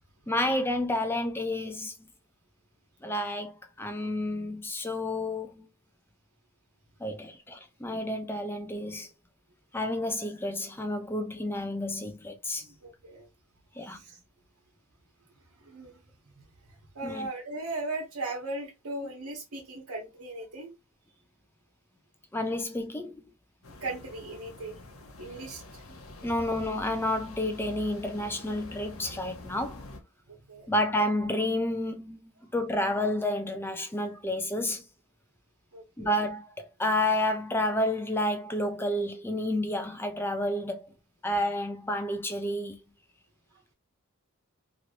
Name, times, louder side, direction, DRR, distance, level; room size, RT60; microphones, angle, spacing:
voice 1, 0.3-2.1 3.0-5.7 7.0-9.1 9.7-12.7 13.7-14.0 17.0-17.3 22.3-23.2 26.2-29.8 30.7-34.8 36.0-40.9 41.2-42.8, left 1 dB, 10° left, 0.4 m, -30 dB
voice 2, 12.6-13.3 13.9-14.2 15.6-16.0 16.9-20.7 23.8-24.8 25.2-25.6 26.3-26.4 30.3-30.7 35.7-36.1, right 2 dB, 80° right, 1.2 m, -38 dB
sound 1, 23.6-30.0, left 2 dB, 65° left, 0.8 m, -46 dB
3.0 x 2.6 x 3.0 m
head